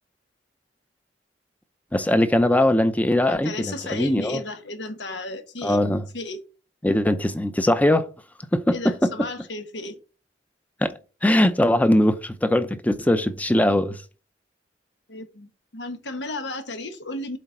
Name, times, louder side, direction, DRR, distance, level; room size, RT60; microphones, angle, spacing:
voice 1, 1.9-4.4 5.6-6.0 6.8-8.1 8.5-9.1 10.8-10.9 11.2-14.0, left 1 dB, 10° left, 0.6 m, -21 dB
voice 2, 3.3-5.8 6.1-6.4 8.7-10.0 15.1-17.4, left 2 dB, 80° left, 1.2 m, -34 dB
7.8 x 4.1 x 5.9 m
head